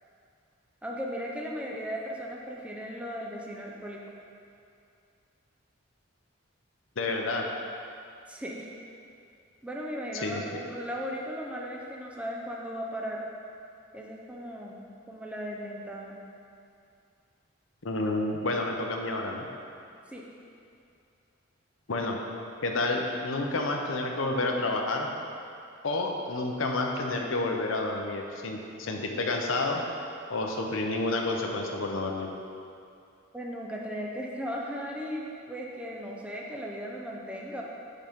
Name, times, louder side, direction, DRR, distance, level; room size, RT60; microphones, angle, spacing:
voice 1, 0.8-4.0 8.3-8.7 9.6-13.2 13.9-16.2 20.1-20.2 33.3-37.6, equal, 5° right, -3 dB, 0.6 m, -37 dB
voice 2, 7.0-7.5 10.2-10.4 17.8-19.4 21.9-22.2 22.6-25.1 25.8-29.8 30.3-32.3, left 2 dB, 80° left, 2 dB, 0.7 m, -29 dB
9.9 x 3.9 x 3.6 m, 2.5 s
head